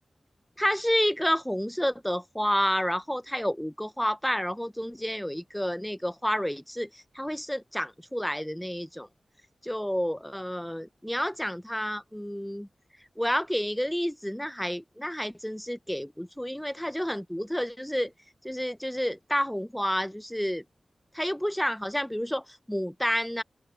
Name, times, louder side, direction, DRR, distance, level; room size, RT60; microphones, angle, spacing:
voice 1, 0.6-9.1 9.6-12.7 13.2-18.1 18.4-20.6 21.1-23.4, equal, 5° left, 0.6 m, -30 dB
open air
wide cardioid pair, 120°, 0 cm